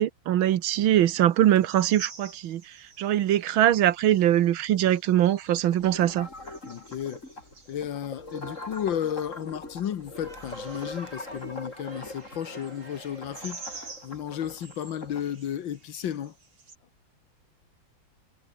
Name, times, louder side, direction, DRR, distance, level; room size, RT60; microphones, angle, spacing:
voice 1, 0.0-2.6 3.0-6.3, right 12 dB, 85° right, 1.8 m, -22 dB
sound 1, 0.9-16.8, right 3 dB, 65° right, 5.0 m, -51 dB
sound 2, 5.7-15.3, left 2 dB, 35° left, 6.2 m, -42 dB
voice 2, 6.7-7.2 7.7-16.3, left 9 dB, 70° left, 2.0 m, -33 dB
Crowd, 10.0-14.2, right 2 dB, 40° right, 6.2 m, -49 dB
omnidirectional pair, 2.2 m